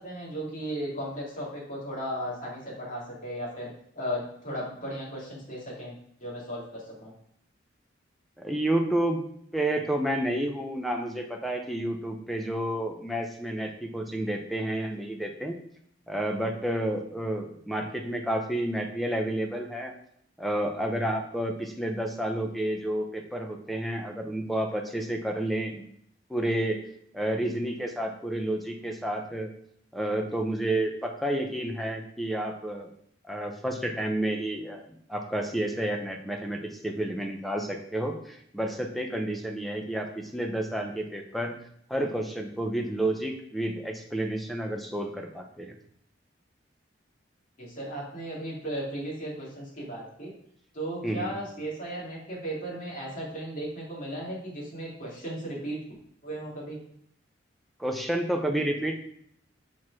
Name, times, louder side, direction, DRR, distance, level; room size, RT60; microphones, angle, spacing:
voice 1, 0.0-5.9 6.2-7.1 47.6-50.3 50.7-55.8 56.2-56.8, right 1 dB, 45° left, -5 dB, 2.5 m, -36 dB
voice 2, 8.4-9.2 9.5-15.6 16.1-19.9 20.4-25.8 26.3-26.8 27.1-29.5 29.9-32.9 33.3-41.6 41.9-45.8 51.0-51.4 57.8-59.0, right 1 dB, ahead, 3 dB, 0.6 m, -30 dB
6.0 x 4.7 x 4.7 m, 0.68 s
head